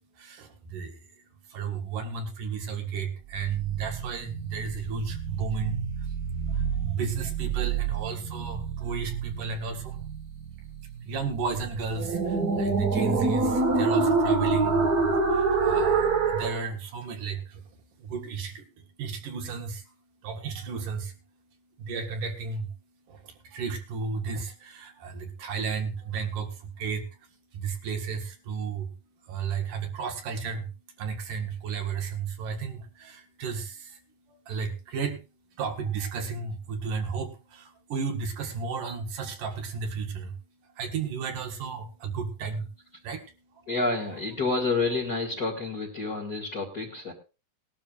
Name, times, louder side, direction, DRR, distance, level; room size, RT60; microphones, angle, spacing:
voice 1, 0.1-6.2 6.5-43.7, right 5 dB, 65° right, 4 dB, 3.1 m, -34 dB
sound 1, 3.3-16.6, right 4 dB, 50° right, 1.1 m, -27 dB
voice 2, 43.7-47.1, left 3 dB, 30° left, -3 dB, 2.3 m, -29 dB
20.0 x 12.5 x 2.5 m, 0.30 s
omnidirectional pair, 4.1 m